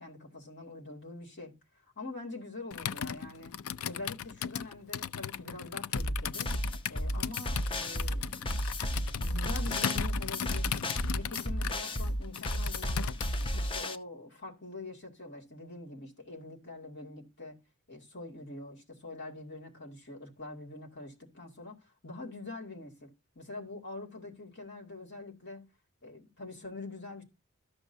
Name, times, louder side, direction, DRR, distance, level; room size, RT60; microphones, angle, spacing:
voice 1, 0.0-1.5 1.8-3.5 3.9-6.5 6.9-8.7 9.2-10.9 11.1-17.6 17.9-23.1 23.3-25.7 26.0-27.2, left 2 dB, 55° left, 2.3 m, -44 dB
Computer keyboard, 2.7-13.5, left 9 dB, 75° left, 0.4 m, -37 dB
sound 1, 6.0-14.0, equal, 25° left, 0.6 m, -33 dB
13.0 x 6.2 x 2.7 m
head